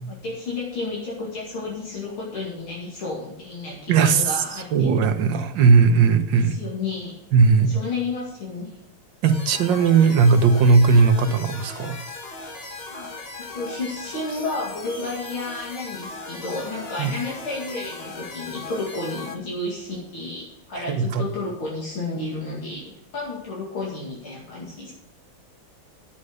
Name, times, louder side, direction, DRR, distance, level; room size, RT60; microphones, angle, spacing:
voice 1, 0.1-4.9 6.3-7.2 7.6-8.8 12.9-13.1 13.4-24.9, left 3 dB, 75° left, -5 dB, 3.1 m, -32 dB
voice 2, 3.9-4.3 4.7-6.6 7.3-7.7 9.2-11.9 17.0-17.1 20.8-21.2, right 5 dB, 65° right, 8 dB, 1.5 m, -17 dB
Weird synth storm, 9.2-19.3, left 3 dB, 30° left, 1.4 m, -38 dB
10.5 x 7.2 x 6.4 m, 0.88 s
omnidirectional pair, 2.4 m